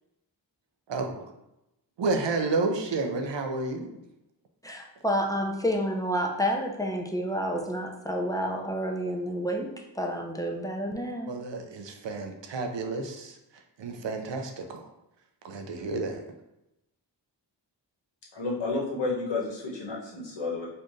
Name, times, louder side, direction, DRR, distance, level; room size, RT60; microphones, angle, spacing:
voice 1, 0.9-1.3 2.0-3.9 11.3-13.4 13.8-14.9 15.4-16.2, right 3 dB, 75° right, 4 dB, 0.7 m, -31 dB
voice 2, 4.6-11.4, equal, 10° left, 1 dB, 0.6 m, -29 dB
voice 3, 18.3-20.7, left 3 dB, 75° left, -3 dB, 1.2 m, -31 dB
4.3 x 2.5 x 3.1 m, 0.89 s
cardioid pair, 50°, 44 cm